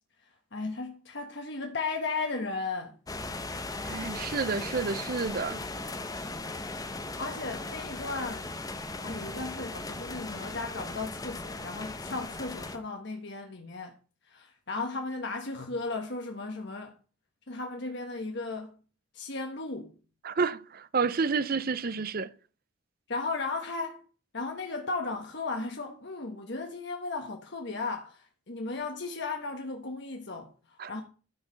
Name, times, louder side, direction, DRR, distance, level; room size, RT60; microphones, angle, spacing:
voice 1, 0.2-3.0 6.8-8.5 9.0-13.9 14.2-17.0 17.5-18.8 19.1-19.9 23.1-24.0 24.3-31.0, left 3 dB, 55° left, 1.2 m, -35 dB
sound 1, 3.1-12.8, left 2 dB, 20° left, 0.8 m, -38 dB
voice 2, 3.8-5.6 20.2-22.3 30.8-30.9, right 5 dB, 45° right, 0.5 m, -30 dB
13.5 x 4.8 x 6.3 m
head